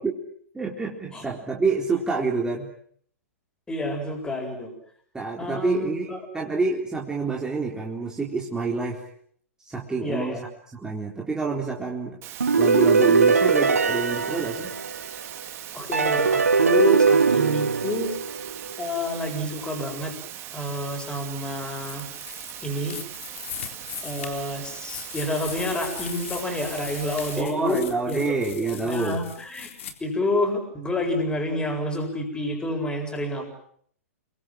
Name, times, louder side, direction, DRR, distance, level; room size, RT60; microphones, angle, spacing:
voice 1, 0.5-2.7 5.1-9.0 9.6-10.4 10.7-12.2 12.5-14.7 27.4-29.3, right 4 dB, 10° right, -2 dB, 4.0 m, -27 dB
voice 2, 3.7-4.7 5.4-6.2 10.0-10.4 14.6-14.7 15.7-18.1 18.8-20.1 20.5-22.1 22.6-23.0 24.0-27.8 28.1-28.4 28.8-29.7 30.0-33.5, left 1 dB, 10° left, 3 dB, 7.6 m, -29 dB
Water, 12.2-27.4, right 12 dB, 30° right, 3.4 m, -40 dB
sound 1, 12.4-15.3 15.9-18.8, right 5 dB, 80° right, 1.8 m, -21 dB
sound 2, 21.7-29.9, left 9 dB, 60° left, 3.8 m, -39 dB
29.5 x 23.5 x 7.6 m, 0.63 s
figure-of-eight pair, 110°, 8 cm